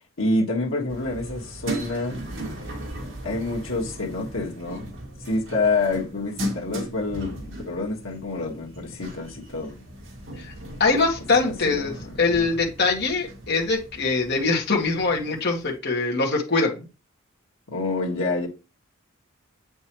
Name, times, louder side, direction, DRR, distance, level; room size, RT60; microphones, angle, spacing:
voice 1, 0.2-2.2 3.2-4.9 5.2-9.9 11.4-12.5 17.7-18.5, left 2 dB, 80° left, 1.8 m, -27 dB
sound 1, 0.9-15.7, right 1 dB, 65° right, 2.3 m, -37 dB
voice 2, 10.8-11.9 12.2-16.9, left 3 dB, 55° left, 1.8 m, -23 dB
8.3 x 5.4 x 3.1 m
head